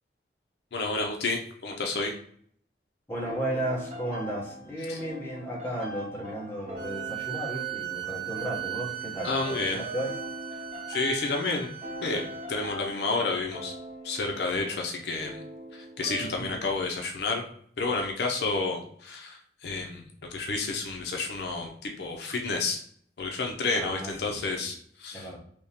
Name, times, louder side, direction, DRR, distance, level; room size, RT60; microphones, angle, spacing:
voice 1, 0.7-2.1 4.9-5.0 9.2-9.8 10.9-11.7 12.0-13.7 14.0-15.4 15.7-17.4 17.8-22.8 23.2-25.3, left 3 dB, 70° left, 2 dB, 0.5 m, -30 dB
voice 2, 3.1-10.1 16.2-16.5 23.7-24.7 25.1-25.4, right 1 dB, 10° left, -5 dB, 0.9 m, -34 dB
sound 1, 3.3-16.9, right 1 dB, 35° right, 0.5 m, -42 dB
sound 2, 6.8-12.5, right 13 dB, 60° right, 0.9 m, -37 dB
3.5 x 2.8 x 2.8 m, 0.62 s
head